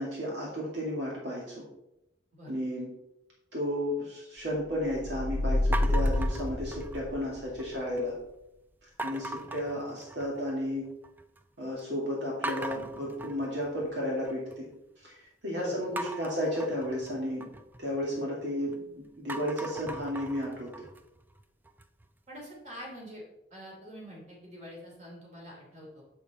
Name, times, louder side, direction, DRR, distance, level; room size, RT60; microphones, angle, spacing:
voice 1, 0.0-1.6 2.4-2.9 3.5-8.1 9.0-10.9 11.6-14.7 15.0-17.5 17.8-20.7, equal, 70° right, -4 dB, 2.1 m, -33 dB
sound 1, 4.8-7.5, left 1 dB, 30° left, 1.0 m, -28 dB
sound 2, 5.7-7.2 7.6-8.1 9.0-10.5 10.8-11.4 11.8-11.9 12.4-14.6 16.0-18.8 19.1-22.1, right 1 dB, 10° right, 0.3 m, -40 dB
voice 2, 15.5-15.9 22.3-23.2 23.5-26.0, equal, 40° right, -3 dB, 3.0 m, -45 dB
7.4 x 6.9 x 4.1 m, 0.86 s
head